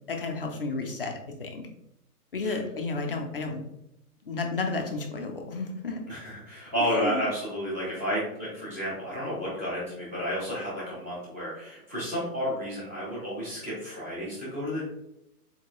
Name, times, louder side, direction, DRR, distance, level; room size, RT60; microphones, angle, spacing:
voice 1, 0.1-1.1 1.4-1.7 2.3-3.6 4.2-6.0 6.8-7.3, left 3 dB, 40° left, 2 dB, 0.4 m, -32 dB
voice 2, 6.1-14.8, equal, 10° right, -9 dB, 0.6 m, -31 dB
4.3 x 3.0 x 2.2 m, 0.83 s
hypercardioid pair, 165°, 46 cm